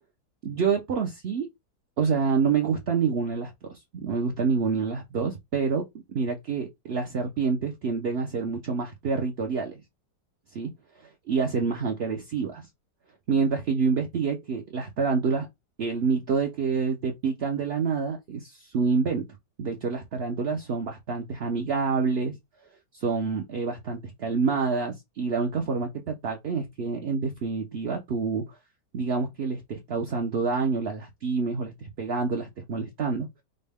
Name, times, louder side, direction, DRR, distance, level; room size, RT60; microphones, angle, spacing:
voice 1, 0.4-1.5 2.0-5.8 6.1-9.8 10.5-10.7 11.0-12.7 13.3-15.5 15.8-19.2 19.6-22.4 22.9-28.4 28.9-33.3, right 5 dB, 55° right, 0.7 m, -27 dB
5.2 x 2.2 x 3.5 m
omnidirectional pair, 1.8 m